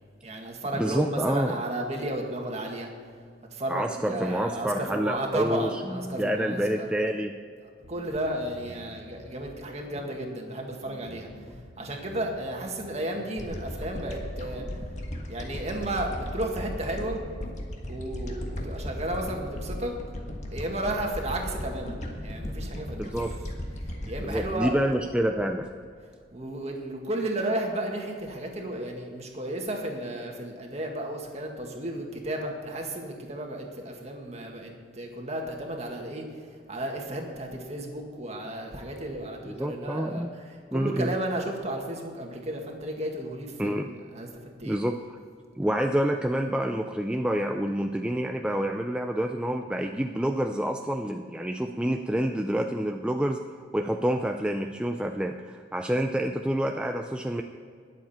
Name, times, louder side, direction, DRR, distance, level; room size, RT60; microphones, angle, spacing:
voice 1, 0.2-2.9 3.5-6.9 7.9-11.3 11.8-14.8 15.3-17.2 17.9-19.9 20.5-22.0 22.2-23.1 24.1-24.7 26.3-36.4 36.7-43.8 44.1-44.8, right 1 dB, 35° right, 1 dB, 1.8 m, -33 dB
voice 2, 0.8-1.5 3.7-7.3 23.0-23.3 24.2-25.7 39.5-40.3 40.7-41.1 43.6-43.9 44.6-45.2 45.6-53.4 53.7-57.4, right 1 dB, 5° right, 4 dB, 0.4 m, -28 dB
sound 1, 7.8-15.2, left 1 dB, 75° left, 0.9 m, -49 dB
sound 2, 13.4-25.8, equal, 40° left, 1.5 m, -36 dB
21.0 x 7.4 x 4.3 m, 2.2 s
head